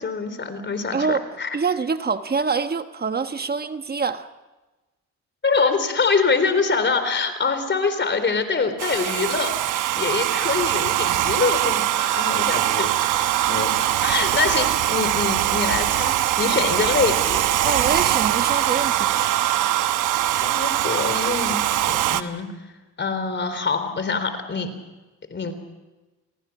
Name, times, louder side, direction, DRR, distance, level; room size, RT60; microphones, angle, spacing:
voice 1, 0.0-1.5 5.4-17.9 20.3-22.5 23.0-24.7 25.3-25.5, left 4 dB, 40° left, 10 dB, 3.8 m, -25 dB
voice 2, 0.9-1.2 1.5-4.3 17.6-19.4, right 5 dB, 30° right, 9 dB, 1.2 m, -25 dB
Domestic sounds home sounds, 8.8-22.2, right 13 dB, 85° right, 1.0 m, -22 dB
28.5 x 19.5 x 6.0 m, 1.1 s
cardioid pair, 90°, 30 cm